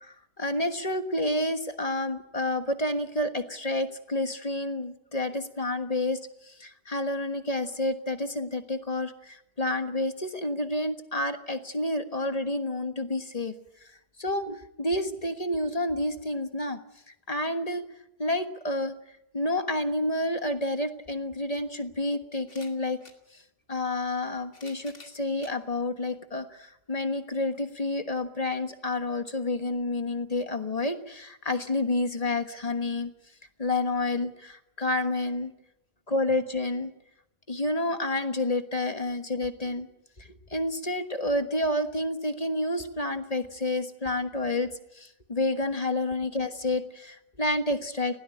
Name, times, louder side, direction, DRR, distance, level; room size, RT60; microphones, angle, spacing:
voice 1, 0.1-13.5 14.2-16.8 17.1-17.8 18.2-18.9 19.3-23.0 23.7-33.1 33.6-35.5 36.1-36.9 37.5-39.9 40.2-48.2, left 1 dB, 25° left, 8 dB, 1.3 m, -29 dB
sound 1, 22.4-23.2 24.2-25.6 26.3-26.4 27.7-27.8, left 3 dB, 45° left, 2.8 m, -51 dB
20.0 x 17.5 x 9.9 m, 0.82 s
omnidirectional pair, 1.8 m